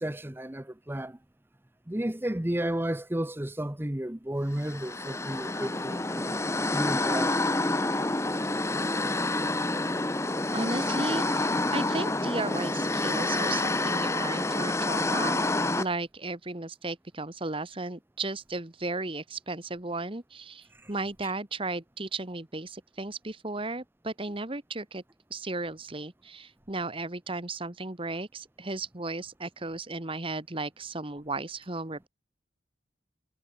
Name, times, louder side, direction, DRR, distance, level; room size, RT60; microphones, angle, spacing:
voice 1, 0.0-1.2 1.9-6.4 6.7-7.6, right 1 dB, 10° right, 0.8 m, -32 dB
sound 1, 4.6-15.8, left 2 dB, 15° left, 1.0 m, -28 dB
voice 2, 10.5-15.4 15.8-25.0 25.3-32.1, right 2 dB, 30° right, 1.5 m, -35 dB
head